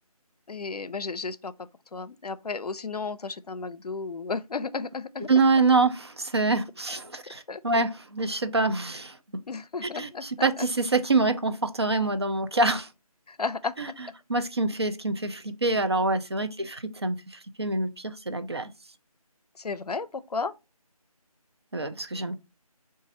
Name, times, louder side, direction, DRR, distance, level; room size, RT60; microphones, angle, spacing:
voice 1, 0.5-5.3 7.5-7.6 9.5-10.7 13.3-13.7 16.6-16.7 19.6-20.5, left 4 dB, 85° left, 0.5 m, -33 dB
voice 2, 5.3-9.2 9.9-12.9 13.8-13.9 14.3-18.7 21.7-22.4, right 3 dB, 45° right, 0.5 m, -26 dB
3.9 x 2.5 x 3.7 m
figure-of-eight pair, 165°, 19 cm